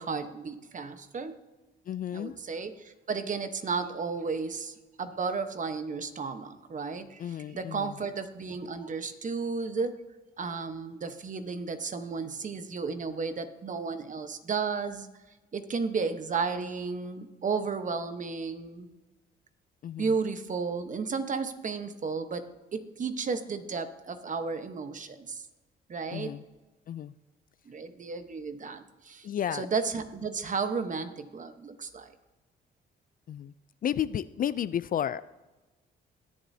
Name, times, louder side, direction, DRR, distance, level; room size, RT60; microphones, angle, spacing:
voice 1, 0.0-1.4 2.1-10.0 10.4-15.1 15.5-18.9 20.0-25.4 25.9-26.4 27.7-29.3 29.5-32.1, right 5 dB, 40° right, 9 dB, 1.1 m, -33 dB
voice 2, 1.9-2.4 7.2-8.0 19.8-20.1 26.1-26.4 26.9-27.1 29.2-29.7 33.3-33.5 33.8-35.2, left 10 dB, 45° left, 16 dB, 0.4 m, -32 dB
21.5 x 7.3 x 2.8 m, 1.1 s
cardioid pair, 90°, 20 cm